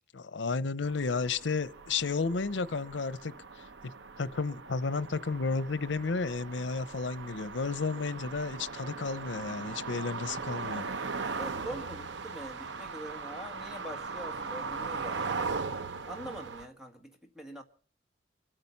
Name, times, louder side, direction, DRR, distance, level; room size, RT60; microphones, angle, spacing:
voice 1, 0.1-3.9 4.2-10.9, left 4 dB, 90° left, 0.7 m, -32 dB
sound 1, 0.8-16.7, right 4 dB, 80° right, 0.7 m, -39 dB
voice 2, 11.4-15.2 16.0-17.6, equal, 5° right, 1.7 m, -44 dB
25.0 x 9.0 x 5.5 m
head